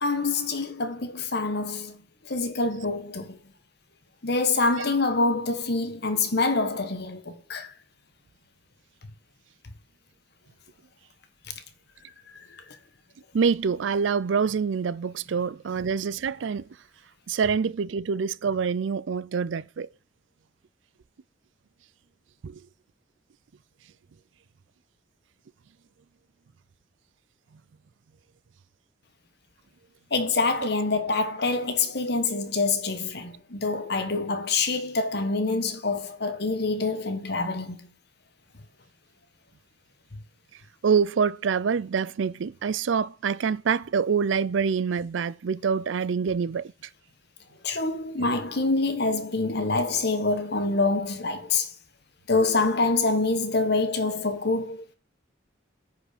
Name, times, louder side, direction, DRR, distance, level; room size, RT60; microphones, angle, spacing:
voice 1, 0.0-3.3 4.2-7.7 12.3-12.4 30.1-37.9 47.6-51.7 52.3-54.8, left 3 dB, 55° left, 1.3 m, -26 dB
voice 2, 13.3-16.6 17.3-19.9 22.4-22.6 40.8-46.7, right 6 dB, 75° right, 0.4 m, -26 dB
9.8 x 4.9 x 5.1 m
head